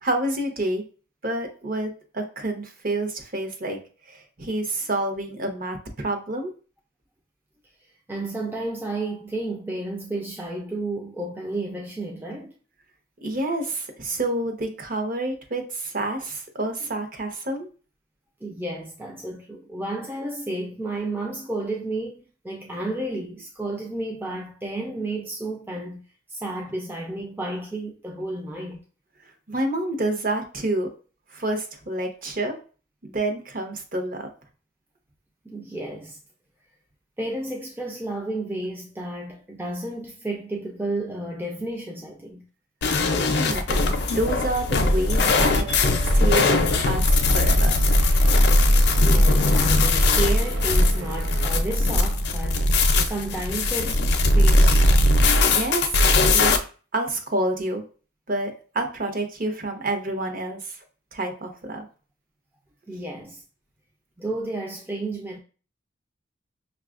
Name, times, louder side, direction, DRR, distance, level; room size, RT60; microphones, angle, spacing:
voice 1, 0.0-0.8 1.2-3.8 4.1-6.5 13.2-17.7 29.5-30.9 31.3-32.6 33.0-34.3 43.3-43.8 44.2-45.6 46.0-46.6 46.8-47.7 55.5-56.0 56.3-56.5 56.9-57.8 58.3-60.8 61.1-61.9, right 2 dB, 45° right, 0.7 m, -28 dB
voice 2, 7.8-12.6 18.4-26.0 26.3-28.8 35.4-36.2 37.2-42.5 49.0-54.1 54.3-54.9 62.9-63.4 64.2-65.4, right 2 dB, 10° right, 0.3 m, -32 dB
sound 1, 42.8-56.6, left 2 dB, 55° left, 0.4 m, -19 dB
sound 2, 45.1-51.5, right 4 dB, 90° right, 0.5 m, -39 dB
5.8 x 2.3 x 2.4 m
head